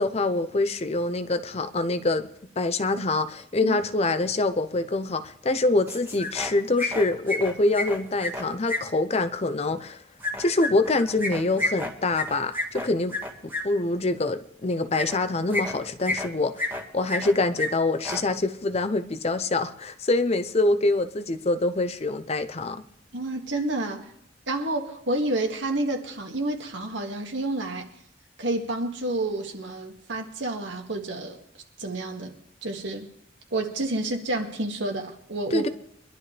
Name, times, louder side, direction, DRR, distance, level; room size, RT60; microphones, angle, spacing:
voice 1, 0.0-2.3 2.6-10.0 10.4-13.2 13.4-22.8 35.5-35.7, left 2 dB, 35° left, 0.7 m, -25 dB
sound 1, 5.9-6.5 6.8-8.8 10.2-13.6 14.9-15.2 15.5-16.3 16.6-17.3 17.6-17.7 18.0-18.2, left 2 dB, 10° right, 1.8 m, -30 dB
voice 2, 23.1-24.1 24.5-27.9 28.4-31.4 31.8-32.3 32.6-33.1 33.5-35.7, right 2 dB, 75° right, 2.0 m, -29 dB
23.5 x 11.5 x 3.4 m
head